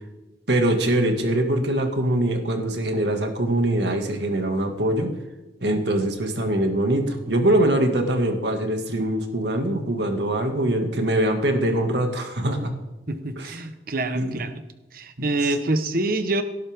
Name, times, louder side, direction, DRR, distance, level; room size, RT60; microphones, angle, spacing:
voice 1, 0.5-5.1 5.6-12.7 13.4-13.6 14.1-14.4 15.2-15.5, right 1 dB, 75° right, 4 dB, 2.2 m, -23 dB
voice 2, 13.1-14.5 14.9-16.4, right 2 dB, 55° right, 9 dB, 1.2 m, -26 dB
17.5 x 12.0 x 3.7 m, 1.0 s
head